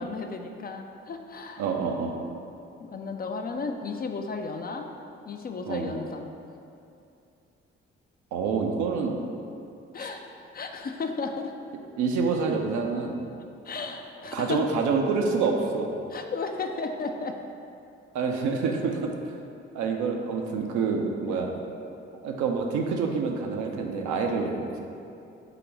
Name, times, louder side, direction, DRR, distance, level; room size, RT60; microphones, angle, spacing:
voice 1, 0.0-1.6 2.8-4.9 5.3-6.3 9.9-11.5 13.6-14.6 16.1-17.4, left 4 dB, 30° left, 4 dB, 0.4 m, -34 dB
voice 2, 1.6-2.2 5.7-5.9 8.3-9.2 10.0-10.1 12.0-13.2 14.3-15.9 18.1-19.4 19.7-21.5 22.2-24.8, right 4 dB, 65° right, 2 dB, 0.6 m, -27 dB
4.0 x 2.9 x 4.5 m, 2.6 s
hypercardioid pair, 45°, 31 cm